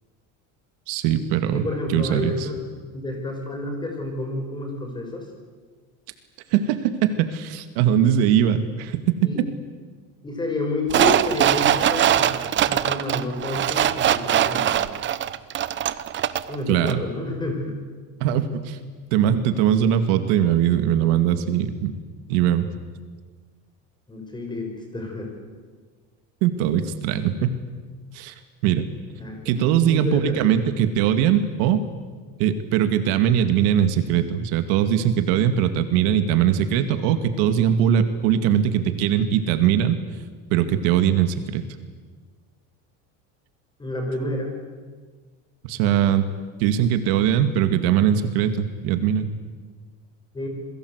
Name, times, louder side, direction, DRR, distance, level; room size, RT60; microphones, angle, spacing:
voice 1, 0.9-1.6 1.9-2.5 6.5-9.0 16.7-17.0 18.2-18.8 19.1-21.9 22.3-22.7 26.4-27.6 28.1-28.3 28.6-28.9 29.5-31.8 32.4-40.0 40.5-41.6 45.7-46.3 46.6-49.3, right 9 dB, 80° right, 9 dB, 2.3 m, -21 dB
voice 2, 1.5-2.6 2.9-5.3 9.2-9.4 10.2-14.9 16.5-17.8 24.1-25.3 29.1-30.6 43.8-44.5 50.3-50.5, left 2 dB, 10° left, 3 dB, 5.9 m, -29 dB
sound 1, 10.9-16.6 16.9-17.0, right 11 dB, 30° right, 0.8 m, -21 dB
28.0 x 22.5 x 8.2 m, 1.5 s
cardioid pair, 165°, 38 cm